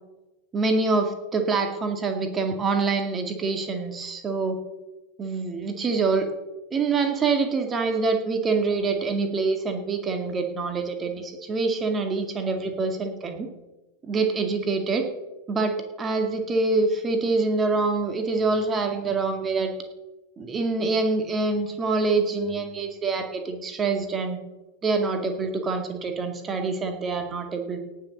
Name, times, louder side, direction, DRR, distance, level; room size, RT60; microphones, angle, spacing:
voice 1, 0.5-4.6 5.2-6.3 6.7-13.5 14.0-15.1 15.5-19.7 20.4-24.4 24.8-27.9, right 3 dB, 20° right, 5 dB, 2.1 m, -25 dB
17.5 x 6.6 x 7.2 m, 1.1 s
figure-of-eight pair, 90°, 0 cm